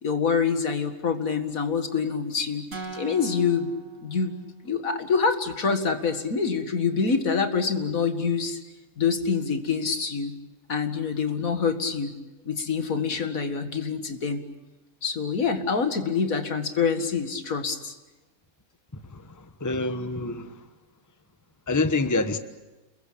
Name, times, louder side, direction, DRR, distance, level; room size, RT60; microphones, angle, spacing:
voice 1, 0.0-3.7 4.0-4.3 4.6-8.6 9.0-10.3 10.7-12.1 12.5-14.4 15.0-17.9, left 5 dB, 70° left, 2.4 m, -26 dB
sound 1, 2.7-4.8, right 4 dB, 70° right, 4.1 m, -41 dB
voice 2, 19.1-20.5 21.7-22.4, left 3 dB, 15° left, 1.2 m, -27 dB
29.0 x 22.0 x 8.7 m
omnidirectional pair, 1.5 m